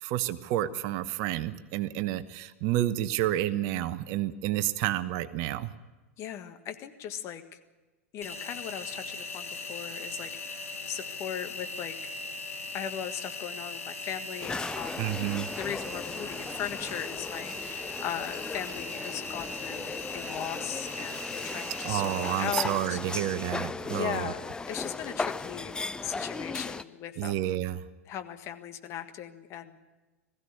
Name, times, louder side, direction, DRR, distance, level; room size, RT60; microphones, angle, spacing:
voice 1, 0.0-5.7 15.0-15.5 21.8-24.3 27.2-27.8, right 13 dB, 45° right, 13 dB, 1.0 m, -30 dB
voice 2, 6.2-7.4 8.1-12.2 12.7-15.2 15.5-23.0 23.9-25.7 26.0-27.4 28.1-29.8, left 9 dB, 35° left, 8 dB, 1.6 m, -38 dB
Engine, 8.2-22.5, left 3 dB, 80° left, 4.6 m, -39 dB
sound 1, 14.4-26.8, left 3 dB, 10° left, 0.6 m, -37 dB
20.5 x 15.5 x 9.8 m, 1.2 s
figure-of-eight pair, 95°, 8 cm